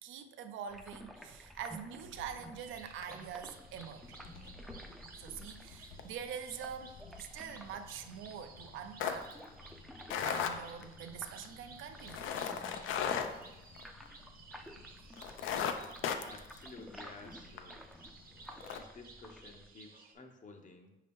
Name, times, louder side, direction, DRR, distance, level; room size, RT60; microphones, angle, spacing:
voice 1, 0.0-4.2 5.2-9.4 10.2-12.3, right 8 dB, 80° right, 8 dB, 0.4 m, -45 dB
sound 1, 0.7-19.7, equal, ahead, 0.4 m, -54 dB
sound 2, 2.0-2.7 3.0-3.3 3.6-14.4 14.7-14.8 15.1-17.7 18.1-18.2 18.5-18.8, left 8 dB, 80° left, 0.4 m, -39 dB
sound 3, 2.6-20.2, right 4 dB, 45° right, 0.7 m, -57 dB
voice 2, 16.0-17.9 18.7-21.0, left 3 dB, 40° left, 4 dB, 0.6 m, -53 dB
5.1 x 2.8 x 3.5 m, 0.94 s
cardioid pair, 90°, 20 cm